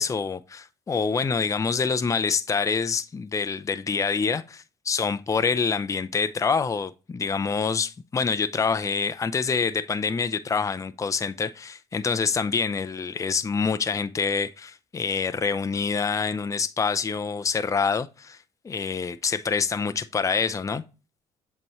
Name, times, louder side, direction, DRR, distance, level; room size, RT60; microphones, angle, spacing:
voice 1, 0.0-4.4 4.9-18.4 18.6-20.8, left 5 dB, 25° left, 0.5 m, -26 dB
7.6 x 4.3 x 3.0 m
hypercardioid pair, 55°, 13 cm